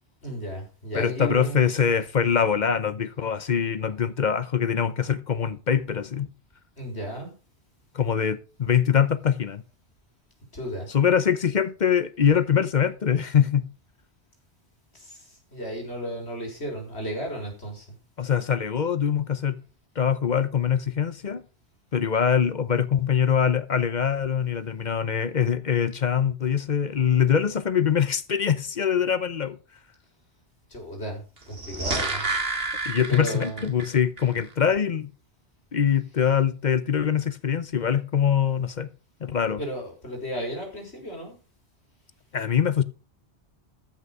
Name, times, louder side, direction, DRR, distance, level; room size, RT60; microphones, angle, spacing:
voice 1, 0.2-1.7 6.8-7.3 10.5-10.9 14.9-15.3 15.5-17.9 30.7-32.3 32.9-33.7 39.6-41.4, right 1 dB, 75° left, 4.4 m, -34 dB
voice 2, 0.9-6.3 7.9-9.6 10.9-13.7 18.2-19.6 20.0-21.4 21.9-29.6 32.9-35.1 35.7-38.9 39.2-39.6 42.3-42.8, left 8 dB, 45° left, 0.8 m, -23 dB
sound 1, 31.4-33.9 34.2-34.3, right 2 dB, 60° right, 2.5 m, -29 dB
14.0 x 6.3 x 5.3 m
omnidirectional pair, 1.1 m